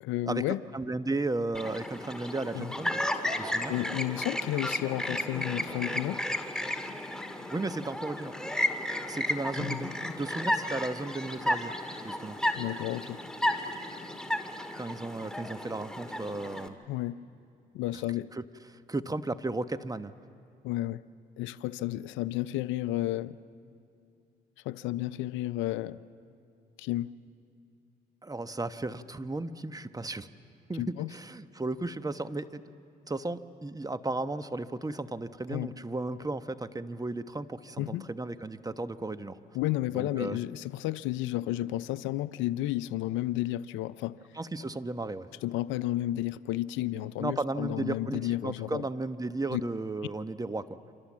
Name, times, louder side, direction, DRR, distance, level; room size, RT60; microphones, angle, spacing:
voice 1, 0.0-0.6 2.5-2.7 3.7-6.2 9.6-9.9 12.6-13.2 16.9-17.2 17.7-18.3 20.6-21.0 21.4-23.4 24.6-26.0 26.8-27.1 30.8-31.1 35.5-35.7 37.8-38.0 39.5-44.2 45.4-48.8 49.5-49.6, left 15 dB, 85° left, 15 dB, 0.6 m, -32 dB
voice 2, 0.7-3.0 3.4-3.7 7.5-8.4 9.1-11.7 12.0-12.4 14.8-16.8 18.3-18.4 18.7-20.1 28.2-30.3 30.7-32.6 33.1-39.4 39.9-40.4 44.3-45.3 47.2-50.7, right 2 dB, 20° right, 11 dB, 1.1 m, -34 dB
Chirp tweet, 1.5-16.7, left 1 dB, 5° left, 2.3 m, -33 dB
28.5 x 26.0 x 7.4 m, 2.5 s
supercardioid pair, 60°, 19 cm